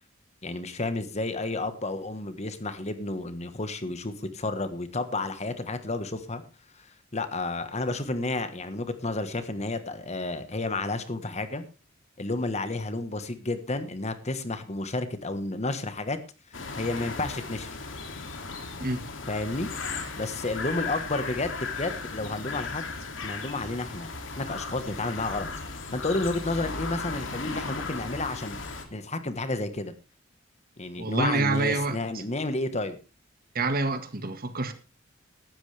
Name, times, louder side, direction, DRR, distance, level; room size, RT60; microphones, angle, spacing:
voice 1, 0.4-6.4 6.8-6.9 7.1-11.6 12.2-16.2 16.8-17.8 19.3-19.7 20.2-22.8 23.2-24.1 24.4-28.6 28.9-29.9 30.8-33.0, left 2 dB, 35° left, 1.3 m, -31 dB
sound 1, 16.5-28.8, left 4 dB, 65° left, 2.7 m, -36 dB
voice 2, 31.0-32.2 33.5-34.7, right 3 dB, 50° right, 1.7 m, -27 dB
16.5 x 12.5 x 3.4 m
head